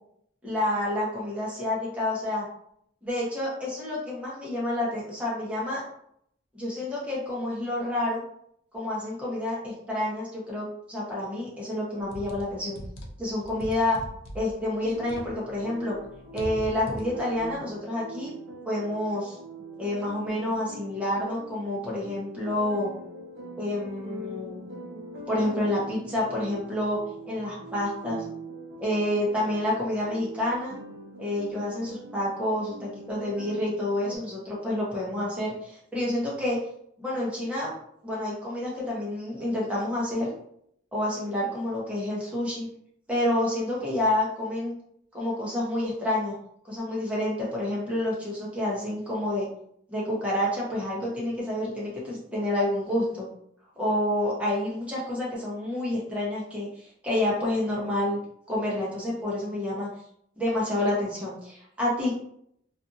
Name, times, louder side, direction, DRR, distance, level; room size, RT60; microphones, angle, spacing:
voice 1, 0.4-2.5 3.0-5.8 6.5-8.2 8.7-12.8 13.2-14.0 14.3-16.0 16.3-18.3 18.6-19.4 19.8-22.9 23.6-24.7 25.3-28.2 28.8-30.8 31.2-36.6 37.0-37.7 38.0-40.3 40.9-42.7 43.1-44.7 45.1-46.4 46.7-49.5 49.9-53.3 53.8-58.2 58.5-59.9 60.4-62.2, left 1 dB, 5° right, -6 dB, 0.8 m, -29 dB
sound 1, 12.0-15.6 15.9-17.6, equal, 85° left, 0.5 m, -40 dB
sound 2, 14.8-34.2, right 2 dB, 55° right, 0.7 m, -43 dB
2.6 x 2.5 x 2.5 m, 0.70 s
head